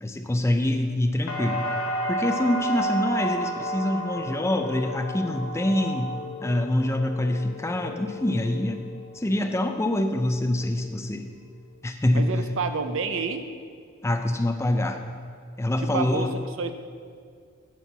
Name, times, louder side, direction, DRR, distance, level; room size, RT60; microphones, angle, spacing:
voice 1, 0.0-1.6 2.1-8.9 9.1-11.3 11.8-12.3 14.0-15.0 15.6-16.3, left 1 dB, 15° left, 6 dB, 0.4 m, -25 dB
sound 1, 1.3-9.2 9.5-10.2, equal, 80° left, 1.0 m, -32 dB
voice 2, 12.1-13.5 15.8-16.3 16.6-16.7, right 5 dB, 65° right, 8 dB, 0.6 m, -29 dB
10.5 x 4.5 x 7.2 m, 2.1 s
head